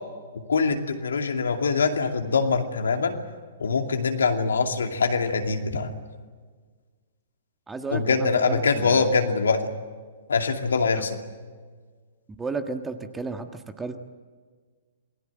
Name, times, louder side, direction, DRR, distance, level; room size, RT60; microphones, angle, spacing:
voice 1, 0.5-3.2 3.6-6.0 7.9-9.7 10.3-11.2, left 4 dB, 70° left, 4 dB, 2.5 m, -23 dB
voice 2, 7.7-9.1 11.0-11.1 12.4-14.0, right 3 dB, 10° right, 7 dB, 1.6 m, -33 dB
28.0 x 20.0 x 7.7 m, 1.5 s
figure-of-eight pair, 115°, 0 cm